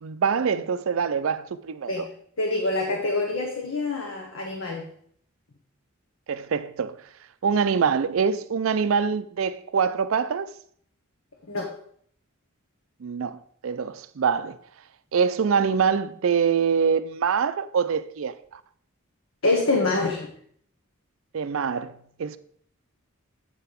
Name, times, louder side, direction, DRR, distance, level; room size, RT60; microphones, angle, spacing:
voice 1, 0.0-2.1 6.3-7.0 7.4-10.5 13.0-14.6 15.1-18.3 21.3-22.4, right 6 dB, 65° right, 0.4 m, -24 dB
voice 2, 2.4-4.9 11.5-11.7 19.4-20.3, left 2 dB, 70° left, 1.1 m, -25 dB
8.8 x 4.7 x 5.1 m
head